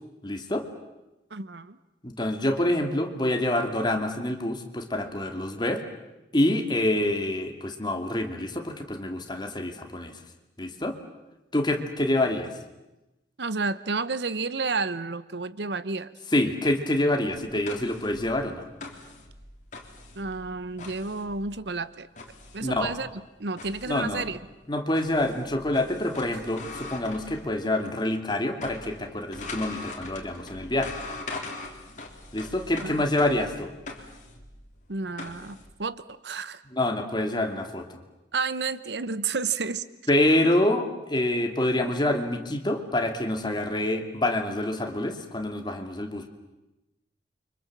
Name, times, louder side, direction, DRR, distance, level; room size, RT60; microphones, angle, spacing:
voice 1, 0.2-0.6 2.0-5.8 6.3-10.1 10.6-11.0 11.5-12.5 16.3-18.7 22.6-22.9 23.9-24.2 24.7-30.9 32.3-33.7 36.7-38.0 40.1-46.3, left 1 dB, 25° left, 5 dB, 2.6 m, -26 dB
voice 2, 1.3-1.8 13.4-16.1 20.2-22.1 22.5-23.1 23.4-24.4 32.8-33.0 34.9-36.6 38.3-39.8, right 4 dB, 75° right, 15 dB, 1.0 m, -31 dB
sound 1, 17.5-28.0 28.3-35.7, left 2 dB, 45° left, 3.7 m, -42 dB
29.5 x 25.0 x 7.5 m, 1.0 s
head